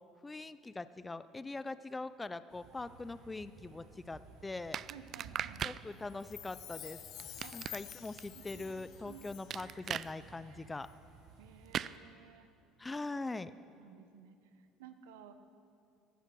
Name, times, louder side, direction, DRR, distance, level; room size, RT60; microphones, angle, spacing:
voice 1, 0.0-4.8 5.6-7.0 7.5-10.9 12.8-13.5, left 3 dB, 15° left, 14 dB, 0.5 m, -42 dB
sound 1, 2.5-11.8, right 3 dB, 75° right, 3.4 m, -57 dB
sound 2, 4.7-5.8 7.2-8.2 9.5-10.1 11.7-11.9, right 9 dB, 50° right, 0.4 m, -38 dB
voice 2, 4.9-5.7 7.4-7.7 8.3-8.6 9.0-9.3 11.4-12.5 13.8-15.3, right 8 dB, 90° right, 9 dB, 1.0 m, -55 dB
Chime, 6.1-9.7 10.0-10.1, left 12 dB, 60° left, 0.7 m, -50 dB
15.5 x 12.0 x 6.1 m, 2.5 s
supercardioid pair, 85°, 0 cm